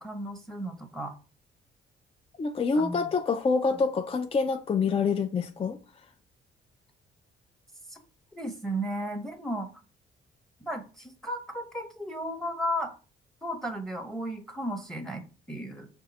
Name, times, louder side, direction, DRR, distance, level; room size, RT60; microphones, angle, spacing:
voice 1, 0.0-1.1 2.8-3.1 7.9-8.0 8.3-9.7 10.6-12.9 13.4-15.9, equal, ahead, 0.8 m, -34 dB
voice 2, 2.4-5.8, left 4 dB, 30° left, 0.4 m, -26 dB
5.3 x 2.5 x 4.0 m
cardioid pair, 90°, 20 cm